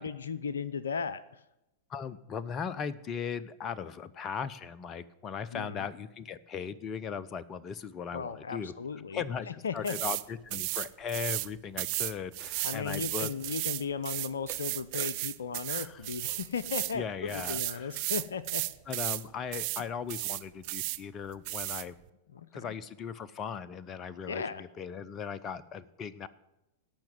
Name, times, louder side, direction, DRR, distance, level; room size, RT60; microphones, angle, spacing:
voice 1, 0.0-1.4 5.5-5.9 8.1-10.0 12.6-18.7 22.3-22.5 24.3-24.6, left 6 dB, 70° left, 16 dB, 0.6 m, -36 dB
voice 2, 1.9-8.7 9.1-13.3 15.7-16.0 16.9-17.9 18.9-21.9 22.5-24.4 24.8-26.3, left 7 dB, 30° left, 17 dB, 0.7 m, -38 dB
sound 1, 9.9-10.2 10.5-11.5 11.8-17.0 17.3-19.2 19.5-19.8 20.1-21.0 21.5-21.8, right 23 dB, 45° right, 0.5 m, -34 dB
17.5 x 5.9 x 9.2 m, 0.93 s
figure-of-eight pair, 95°, 0 cm